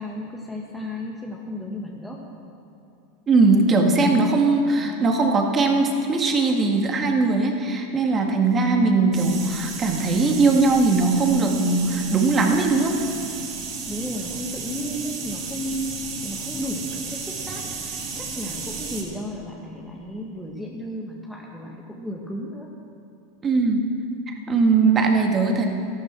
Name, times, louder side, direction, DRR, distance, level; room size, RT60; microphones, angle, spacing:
voice 1, 0.0-2.2 13.9-15.9 16.2-22.7, equal, 5° left, -2 dB, 1.7 m, -34 dB
voice 2, 3.3-13.0 23.4-23.9 24.3-25.7, right 3 dB, 30° right, 2 dB, 2.1 m, -20 dB
sound 1, 9.1-19.0, right 4 dB, 45° right, 3.8 m, -33 dB
13.5 x 12.0 x 6.2 m, 2.7 s
hypercardioid pair, 100°, 0 cm